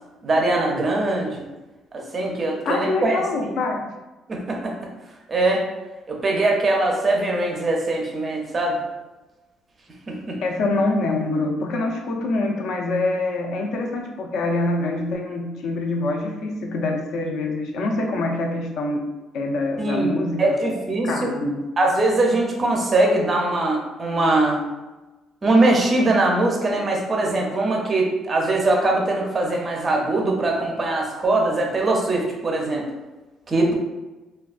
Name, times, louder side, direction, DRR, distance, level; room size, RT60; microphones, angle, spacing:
voice 1, 0.2-1.5 1.9-3.5 4.3-4.8 5.3-5.7 6.1-8.8 10.1-10.4 19.8-21.3 21.8-24.6 25.4-32.8 33.5-33.7, right 2 dB, 25° right, 0 dB, 0.5 m, -21 dB
voice 2, 2.6-3.8 10.4-19.1 19.3-20.7 21.0-21.6, left 2 dB, 65° left, 1 dB, 0.5 m, -25 dB
3.3 x 2.2 x 2.3 m, 1.1 s
cardioid pair, 165°, 0 cm